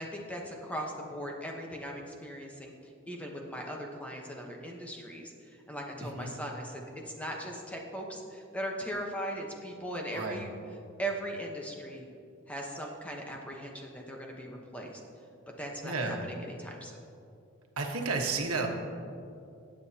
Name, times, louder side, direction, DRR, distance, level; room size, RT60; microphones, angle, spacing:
voice 1, 0.0-10.5 11.0-12.1 12.5-15.0 15.6-17.0, equal, 5° left, 0 dB, 1.0 m, -39 dB
voice 2, 15.8-16.2 17.8-18.7, right 3 dB, 85° right, 2 dB, 1.3 m, -31 dB
19.5 x 8.7 x 2.9 m, 2.6 s
head